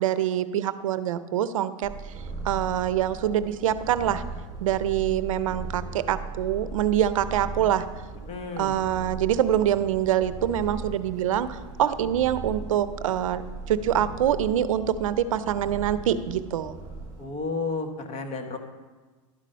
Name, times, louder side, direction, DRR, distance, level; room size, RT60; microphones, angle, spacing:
voice 1, 0.0-1.9 2.4-4.2 4.6-7.9 8.6-13.4 13.7-16.8, right 10 dB, 80° right, 14 dB, 0.5 m, -25 dB
Purr, 1.8-17.2, right 3 dB, 20° right, 3.5 m, -38 dB
voice 2, 8.3-8.8 17.2-18.6, left 3 dB, 35° left, 5 dB, 1.3 m, -32 dB
11.5 x 5.0 x 5.6 m, 1.3 s
hypercardioid pair, 110°, 17 cm